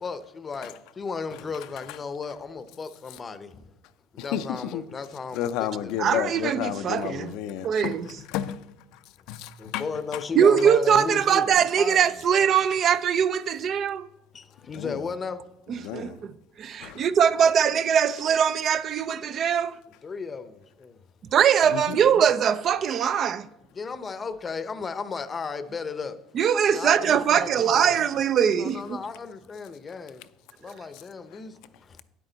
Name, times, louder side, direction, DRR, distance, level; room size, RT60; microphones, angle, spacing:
voice 1, 0.0-3.5 4.1-6.2 9.6-12.0 14.3-15.4 20.0-20.9 23.7-26.2 26.7-28.0 28.5-30.2 30.6-31.5, left 5 dB, 25° left, 0.7 m, -35 dB
voice 2, 4.2-4.8 5.3-8.6 9.3-10.2 14.7-15.1 15.8-16.2 16.8-17.1 21.7-22.0, left 11 dB, 75° left, 0.5 m, -32 dB
voice 3, 6.0-7.3 7.6-8.1 10.4-14.0 15.7-16.3 16.6-19.7 21.3-23.5 26.3-29.0, right 8 dB, 45° right, 0.4 m, -22 dB
9.5 x 8.2 x 3.9 m
cardioid pair, 115°, 0 cm